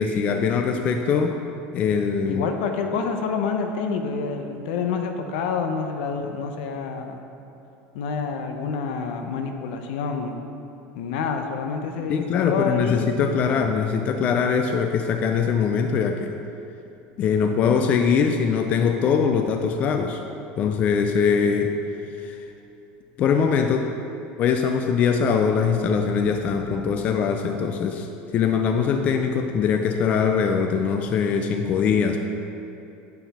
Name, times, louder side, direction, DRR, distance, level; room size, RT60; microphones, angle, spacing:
voice 1, 0.0-1.4 1.7-2.4 12.1-16.3 17.2-20.2 20.6-21.8 22.2-22.4 23.2-23.9 24.4-28.1 28.3-32.2, left 6 dB, 30° left, 5 dB, 0.3 m, -22 dB
voice 2, 2.2-7.2 7.9-10.4 10.9-13.1, left 5 dB, 75° left, 5 dB, 0.8 m, -27 dB
9.1 x 5.8 x 4.2 m, 2.8 s
cardioid pair, 170°, 5 cm